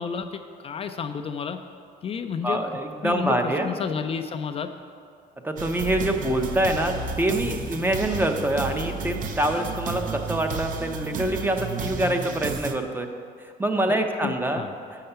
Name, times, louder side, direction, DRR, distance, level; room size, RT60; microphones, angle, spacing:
voice 1, 0.0-1.6 2.0-2.7 3.0-4.7 13.9-14.7, left 6 dB, 35° left, 7 dB, 0.4 m, -31 dB
voice 2, 2.4-3.8 5.4-13.1 13.6-14.6, right 1 dB, 10° right, 5 dB, 0.6 m, -25 dB
sound 1, 5.6-12.7, right 4 dB, 50° right, 0.6 m, -32 dB
6.4 x 5.6 x 6.7 m, 2.2 s
cardioid pair, 110°, 17 cm